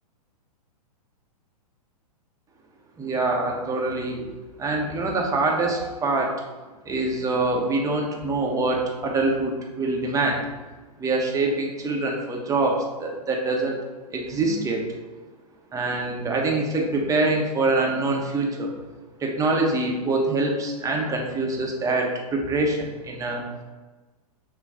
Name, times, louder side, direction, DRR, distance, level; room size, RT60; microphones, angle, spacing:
voice 1, 3.0-4.3 4.6-6.3 6.9-10.4 11.0-13.8 14.1-14.8 15.7-18.7 19.2-23.4, right 2 dB, 15° right, 0 dB, 1.1 m, -24 dB
6.0 x 3.1 x 5.0 m, 1.2 s
hypercardioid pair, 120°, 20 cm